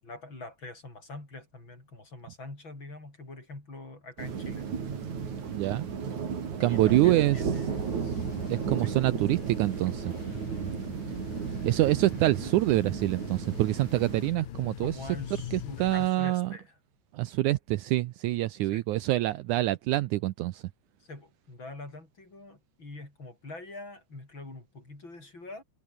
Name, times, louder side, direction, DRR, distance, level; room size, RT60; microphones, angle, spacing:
voice 1, 0.0-4.7 6.6-8.9 14.8-16.8 18.7-18.8 21.0-25.6, left 2 dB, 35° left, 7.5 m, -44 dB
sound 1, 4.2-14.3, right 6 dB, 60° right, 4.6 m, -34 dB
voice 2, 5.5-5.9 6.6-7.4 8.5-10.1 11.6-14.9 15.5-16.5 17.1-20.6, right 17 dB, 75° right, 2.0 m, -26 dB
sound 2, 6.7-16.1, left 11 dB, 90° left, 3.5 m, -44 dB
omnidirectional pair, 3.9 m